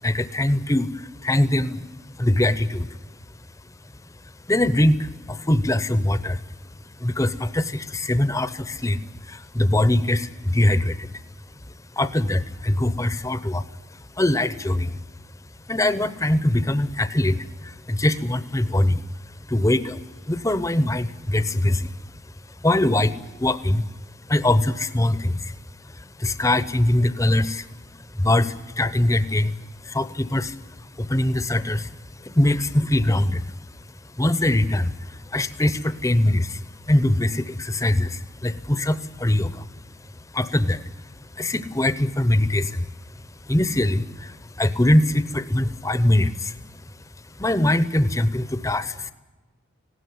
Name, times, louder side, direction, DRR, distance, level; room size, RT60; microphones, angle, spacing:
voice 1, 0.0-1.8 2.2-2.9 4.5-6.4 7.0-11.2 12.0-13.7 13.9-15.0 15.7-19.0 19.5-21.9 22.6-23.8 24.3-25.5 25.9-27.7 28.2-29.5 29.8-31.9 32.2-33.5 34.1-39.8 40.3-40.8 41.4-42.9 43.4-46.5 47.4-49.1, left 1 dB, 15° left, 13 dB, 0.8 m, -22 dB
19.5 x 17.0 x 9.5 m, 1.2 s
head